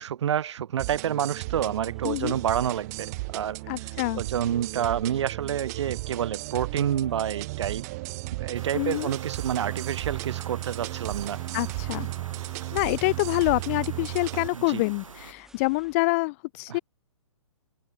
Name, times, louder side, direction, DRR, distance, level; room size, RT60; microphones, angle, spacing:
voice 1, 0.0-3.1 3.3-3.6 4.1-7.8 8.4-11.4 14.5-14.8 16.7-16.8, right 9 dB, 60° right, 0.8 m, -28 dB
sound 1, 0.8-14.5, right 22 dB, 30° right, 0.5 m, -35 dB
sound 2, 1.5-16.0, right 1 dB, ahead, 6.6 m, -59 dB
voice 2, 2.0-2.4 3.7-4.2 8.7-9.2 11.5-12.1 12.7-16.8, left 26 dB, 25° left, 0.4 m, -26 dB
sound 3, 8.5-15.3, right 4 dB, 85° right, 4.0 m, -45 dB
open air
hypercardioid pair, 130°, 17 cm